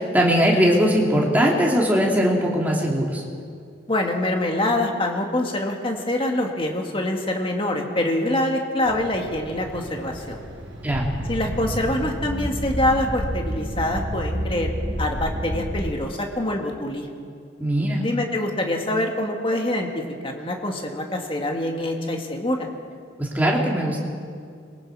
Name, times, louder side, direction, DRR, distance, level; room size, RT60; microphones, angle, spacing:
voice 1, 0.0-3.2 10.8-11.1 17.6-18.0 23.2-24.0, equal, 10° right, -2 dB, 2.7 m, -20 dB
voice 2, 3.9-10.4 11.3-14.7 15.0-17.1 18.0-22.7, left 1 dB, 25° left, 2 dB, 1.9 m, -25 dB
sound 1, 8.9-15.9, equal, 65° right, 3.9 m, -30 dB
25.0 x 22.5 x 4.8 m, 2.2 s
head